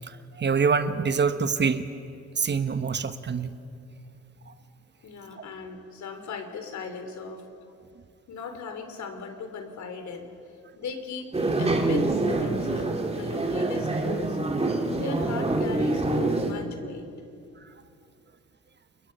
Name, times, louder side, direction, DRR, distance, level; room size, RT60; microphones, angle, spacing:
voice 1, 0.1-1.9 2.4-3.5 4.5-4.6, right 5 dB, 35° right, 10 dB, 1.2 m, -25 dB
voice 2, 5.0-7.4 8.3-10.3 10.8-14.4 15.0-17.1, left 5 dB, 65° left, 6 dB, 3.3 m, -38 dB
sound 1, 11.3-16.5, right 2 dB, 20° right, 2.3 m, -26 dB
29.0 x 22.0 x 5.7 m, 2.5 s
cardioid pair, 90°, 30 cm